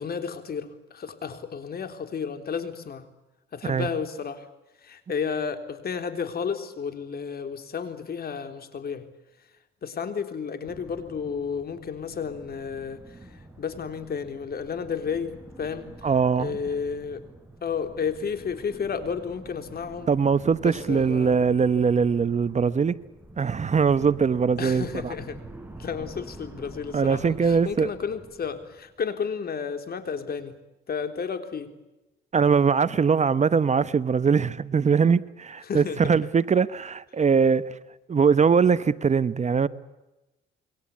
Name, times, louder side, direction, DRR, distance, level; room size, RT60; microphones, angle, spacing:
voice 1, 0.0-3.1 3.5-4.5 4.8-9.1 9.8-15.9 16.4-17.2 17.6-20.1 20.6-21.4 24.6-25.4 25.8-30.5 30.9-31.7 35.6-36.2, left 6 dB, 50° left, 3.7 m, -32 dB
sound 1, 10.6-29.1, right 1 dB, 10° right, 5.2 m, -46 dB
voice 2, 16.0-16.5 20.1-22.9 23.4-25.1 26.9-27.9 32.3-37.7 38.1-39.7, right 6 dB, 35° right, 1.0 m, -22 dB
28.0 x 23.0 x 8.5 m
cardioid pair, 90°, 20 cm